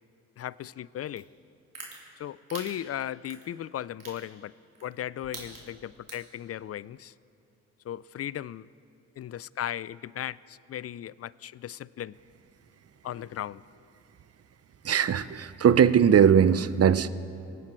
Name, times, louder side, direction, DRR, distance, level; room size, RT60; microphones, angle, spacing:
voice 1, 0.4-1.3 2.2-4.5 4.8-7.1 7.8-8.7 9.2-12.1 13.0-13.6, left 11 dB, 45° left, 20 dB, 0.4 m, -36 dB
sound 1, 1.2-1.3 1.7-1.9 2.5-2.7 3.2-3.4 4.0-4.2 4.7-4.9 5.2-5.7 6.1-6.3, right 5 dB, 60° right, 3.5 m, -41 dB
voice 2, 14.8-17.1, right 8 dB, 45° right, 16 dB, 0.7 m, -20 dB
24.0 x 9.2 x 4.5 m, 2.5 s
hypercardioid pair, 45°, 35 cm